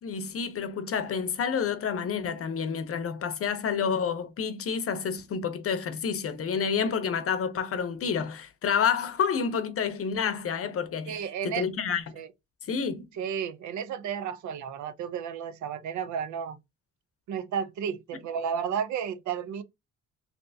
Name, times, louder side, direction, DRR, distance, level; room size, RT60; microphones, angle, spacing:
voice 1, 0.0-12.0 12.7-13.1, left 6 dB, 50° left, 0.7 m, -29 dB
voice 2, 11.1-11.6 12.2-12.3 13.2-16.6 17.3-19.6, right 7 dB, 70° right, 0.5 m, -32 dB
3.3 x 2.7 x 2.7 m
cardioid pair, 90°, 30 cm